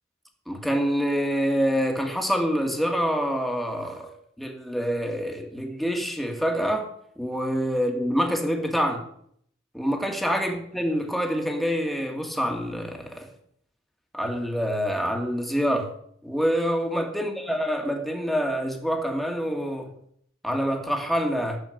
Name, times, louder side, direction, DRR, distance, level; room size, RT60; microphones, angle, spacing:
voice 1, 0.5-4.1 4.4-6.9 7.2-9.0 9.7-13.3 14.1-15.9 16.2-19.9 20.4-21.6, equal, ahead, 2 dB, 1.9 m, -26 dB
11.5 x 6.9 x 7.8 m, 0.67 s
head